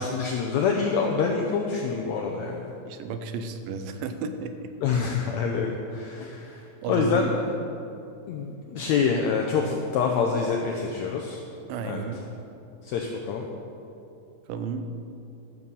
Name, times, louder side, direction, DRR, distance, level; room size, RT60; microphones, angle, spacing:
voice 1, 0.0-2.7 4.8-6.6 6.9-7.4 8.3-11.4 11.8-12.0 12.8-13.5, left 5 dB, 85° left, 1 dB, 1.6 m, -26 dB
voice 2, 2.9-5.0 6.8-7.3 11.7-12.2 14.5-14.9, right 5 dB, 85° right, 8 dB, 2.4 m, -33 dB
12.0 x 6.9 x 5.5 m, 2.7 s
omnidirectional pair, 4.0 m